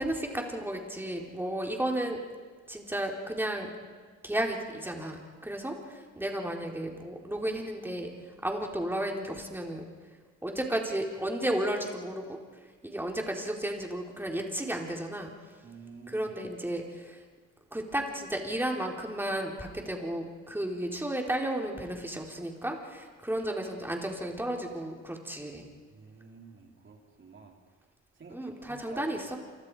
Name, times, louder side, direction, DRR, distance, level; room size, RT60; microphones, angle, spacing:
voice 1, 0.0-2.2 2.7-3.7 4.2-8.1 8.4-9.8 10.4-12.4 12.8-15.3 16.1-17.2 17.7-25.6 28.3-29.4, right 1 dB, 5° right, 1 dB, 4.1 m, -33 dB
voice 2, 15.6-16.3 25.9-27.6 28.2-29.1, right 5 dB, 40° right, 1 dB, 4.1 m, -49 dB
28.5 x 24.5 x 5.0 m, 1.5 s
cardioid pair, 90°, 30 cm